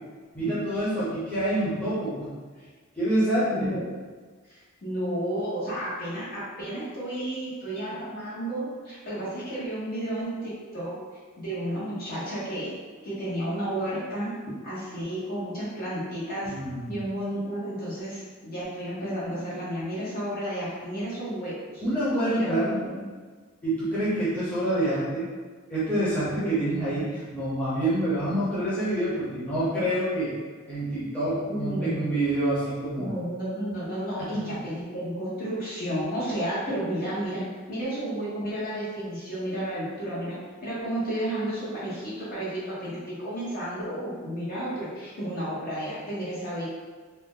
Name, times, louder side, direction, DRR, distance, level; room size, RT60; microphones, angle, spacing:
voice 1, 0.3-2.3 3.0-3.7 16.5-17.0 21.8-22.7 23.6-25.3 25.7-30.3 30.7-33.1 34.2-34.6, right 1 dB, 5° left, -12 dB, 0.8 m, -27 dB
voice 2, 3.5-3.8 4.5-10.9 11.4-12.7 13.0-14.3 14.6-16.5 16.9-21.8 22.3-23.1 26.4-26.6 31.5-32.1 33.0-37.4 37.7-46.7, right 1 dB, 45° left, -8 dB, 0.9 m, -32 dB
2.7 x 2.1 x 3.5 m, 1.5 s
head